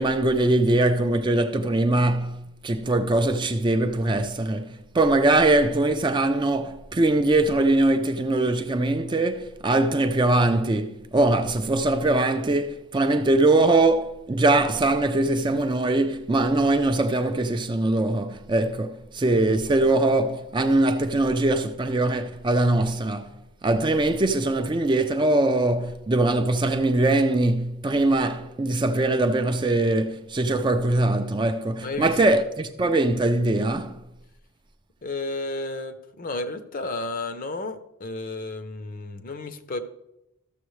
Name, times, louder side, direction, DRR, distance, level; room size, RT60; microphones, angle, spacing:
voice 1, 0.0-23.3 23.6-34.0, right 2 dB, 20° right, 0.4 m, -22 dB
voice 2, 31.8-32.2 35.0-39.8, left 2 dB, 40° left, 0.6 m, -32 dB
13.5 x 7.0 x 3.1 m
head